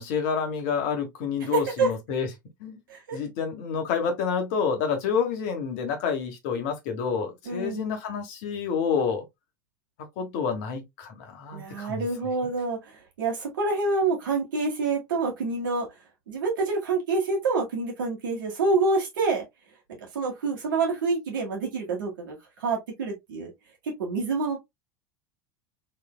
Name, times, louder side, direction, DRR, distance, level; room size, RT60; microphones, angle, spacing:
voice 1, 0.0-2.3 2.6-2.8 3.1-9.2 10.2-12.1, left 6 dB, 55° left, 1.3 m, -28 dB
voice 2, 1.5-1.9 2.9-3.2 7.5-7.9 11.5-15.9 16.3-19.5 20.1-23.5 23.8-24.6, right 3 dB, 70° right, 1.9 m, -27 dB
3.7 x 3.4 x 2.3 m
figure-of-eight pair, 80°, 11 cm